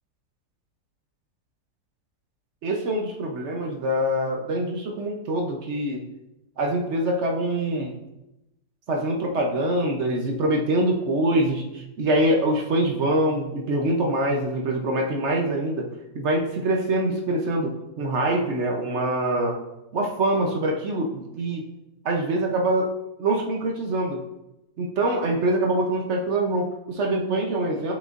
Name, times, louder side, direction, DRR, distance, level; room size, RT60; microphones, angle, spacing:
voice 1, 2.6-6.0 6.6-8.0 8.9-19.6 19.9-21.6 22.0-22.9 23.2-24.2 24.8-27.9, right 1 dB, 55° right, 1 dB, 0.8 m, -24 dB
7.0 x 5.4 x 2.5 m, 0.92 s
omnidirectional pair, 1.8 m